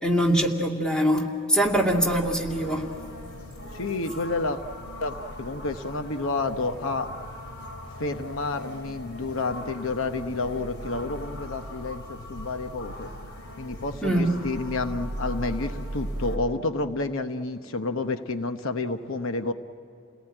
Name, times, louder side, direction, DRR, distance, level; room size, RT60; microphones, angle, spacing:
voice 1, 0.0-2.9 14.0-14.4, right 1 dB, 5° left, -1 dB, 2.4 m, -23 dB
sound 1, 1.6-16.4, equal, 90° left, 3.3 m, -38 dB
voice 2, 3.7-4.6 5.0-7.1 8.0-13.1 13.6-19.5, left 3 dB, 65° left, 8 dB, 1.0 m, -30 dB
29.5 x 18.5 x 9.0 m, 2.7 s
head